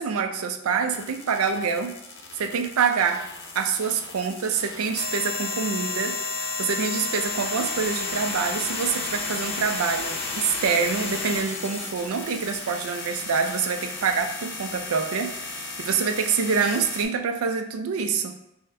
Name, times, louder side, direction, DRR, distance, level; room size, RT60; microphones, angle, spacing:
voice 1, 0.0-1.9 2.4-3.2 3.6-18.3, right 6 dB, 90° right, 6 dB, 0.4 m, -26 dB
sound 1, 0.9-17.0, left 3 dB, 50° left, 0.6 m, -33 dB
4.3 x 2.1 x 3.6 m, 0.84 s
head